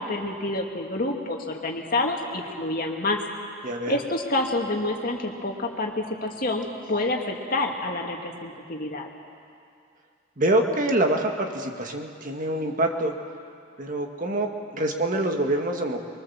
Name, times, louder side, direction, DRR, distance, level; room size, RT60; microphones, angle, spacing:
voice 1, 0.0-3.2 3.9-9.1, left 2 dB, 45° left, 2 dB, 2.3 m, -28 dB
voice 2, 3.6-4.0 10.4-13.1 13.8-16.0, right 1 dB, 40° right, 3 dB, 1.8 m, -25 dB
25.0 x 23.0 x 7.3 m, 2.3 s
head